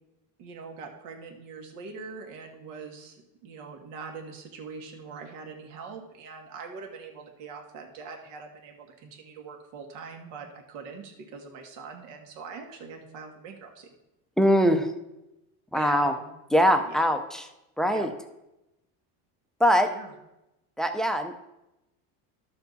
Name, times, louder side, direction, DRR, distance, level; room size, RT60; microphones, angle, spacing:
voice 1, 0.4-13.9 15.7-16.3 16.7-17.1 17.8-18.1 19.8-20.1, right 4 dB, 80° right, 3 dB, 2.0 m, -43 dB
voice 2, 14.4-14.9 15.7-16.1 16.5-17.5 17.8-18.1 19.6-19.9 20.8-21.4, equal, ahead, 7 dB, 0.4 m, -22 dB
12.0 x 6.9 x 4.0 m, 0.93 s
cardioid pair, 145°, 41 cm